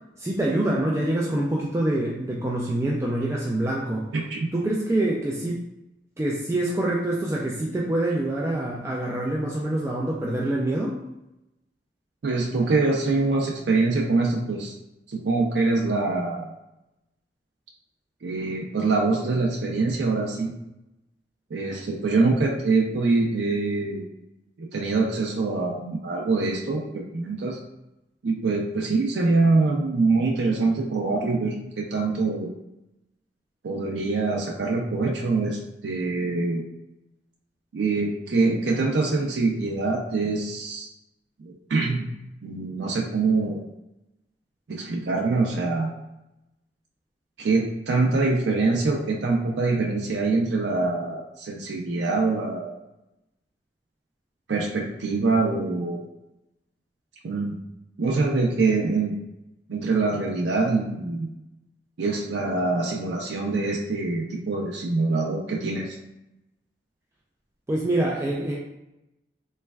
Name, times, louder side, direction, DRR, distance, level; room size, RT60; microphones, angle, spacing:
voice 1, 0.2-4.1 4.5-5.6 6.2-10.9 67.7-68.6, right 1 dB, 15° right, -3 dB, 0.3 m, -25 dB
voice 2, 12.2-14.7 15.1-16.5 18.2-20.6 21.5-24.1 24.6-27.6 28.2-32.5 33.6-36.6 37.7-40.9 41.4-42.1 42.4-43.7 44.7-45.9 47.4-52.7 54.5-56.0 57.2-57.5 58.0-59.1 59.7-61.3 62.0-66.0, right 3 dB, 80° right, -2 dB, 0.4 m, -24 dB
3.3 x 3.1 x 2.2 m, 0.91 s
head